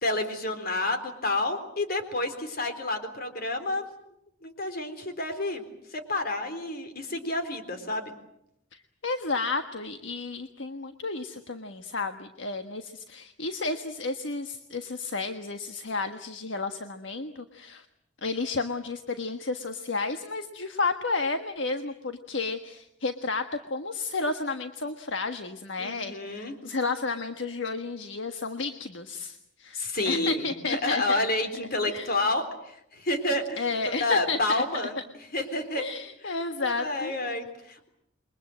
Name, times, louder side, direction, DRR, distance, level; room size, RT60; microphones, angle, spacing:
voice 1, 0.0-3.9 4.4-5.6 5.9-8.1 25.8-26.5 29.7-33.6 34.0-35.0 35.3-35.8 36.2-36.4 36.6-37.9, left 2 dB, 50° left, 7 dB, 3.9 m, -29 dB
voice 2, 8.7-17.8 18.2-31.2 31.9-32.1 33.6-34.6 35.8-37.1, left 3 dB, 65° left, 7 dB, 1.5 m, -32 dB
28.5 x 23.0 x 7.7 m, 0.77 s
head